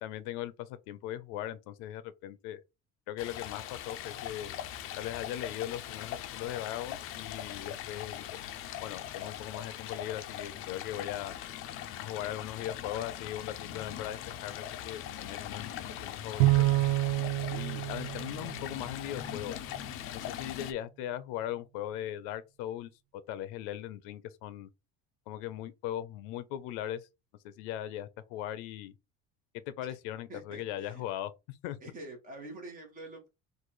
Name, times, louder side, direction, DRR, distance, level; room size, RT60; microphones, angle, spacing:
voice 1, 0.0-2.6 3.1-4.5 4.9-8.4 8.8-11.4 12.0-15.7 16.0-16.7 17.5-19.6 20.1-24.7 25.3-27.1 27.4-28.9 29.7-31.8, left 12 dB, 85° left, 0.6 m, -39 dB
Stream, 3.2-20.7, left 11 dB, 50° left, 0.5 m, -41 dB
Bowed string instrument, 16.4-19.0, right 18 dB, 70° right, 0.5 m, -28 dB
voice 2, 30.3-31.0 31.8-33.3, right 2 dB, 30° right, 1.6 m, -46 dB
3.9 x 2.6 x 4.6 m
cardioid pair, 170°, 29 cm